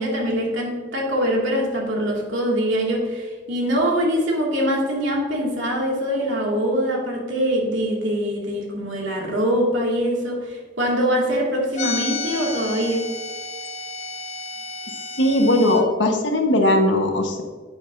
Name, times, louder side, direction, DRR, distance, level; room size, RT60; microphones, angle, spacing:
voice 1, 0.0-13.1, equal, 90° right, -2 dB, 2.4 m, -23 dB
sound 1, 11.7-15.8, left 3 dB, 40° left, 0.9 m, -31 dB
voice 2, 14.9-17.4, left 1 dB, 70° left, 3 dB, 1.4 m, -19 dB
9.4 x 9.3 x 2.7 m, 1.4 s
head